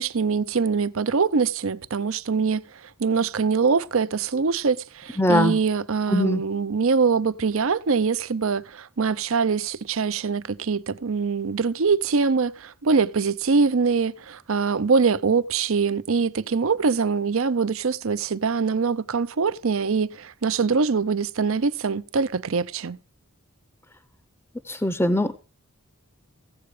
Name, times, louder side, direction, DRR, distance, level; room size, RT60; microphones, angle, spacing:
voice 1, 0.0-23.0, right 5 dB, 65° right, 0.6 m, -23 dB
voice 2, 5.2-5.6 6.1-6.4 24.7-25.3, left 1 dB, 10° left, 0.6 m, -21 dB
16.0 x 7.8 x 4.9 m
head